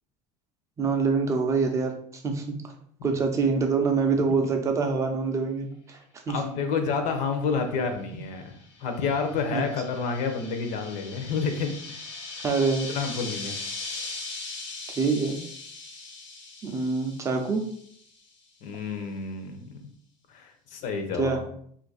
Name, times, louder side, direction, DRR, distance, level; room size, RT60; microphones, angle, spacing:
voice 1, 0.8-2.5 3.0-6.0 6.3-6.4 9.5-9.6 12.4-12.9 15.0-15.4 16.6-17.6 21.2-21.4, right 4 dB, 20° right, 4 dB, 0.5 m, -25 dB
voice 2, 6.3-8.5 8.8-11.7 12.9-13.6 18.6-19.6 20.3-21.4, left 5 dB, 55° left, 6 dB, 0.6 m, -29 dB
sound 1, 8.3-18.1, left 3 dB, 75° left, 1.1 m, -40 dB
2.7 x 2.5 x 3.9 m, 0.64 s
cardioid pair, 155°, 16 cm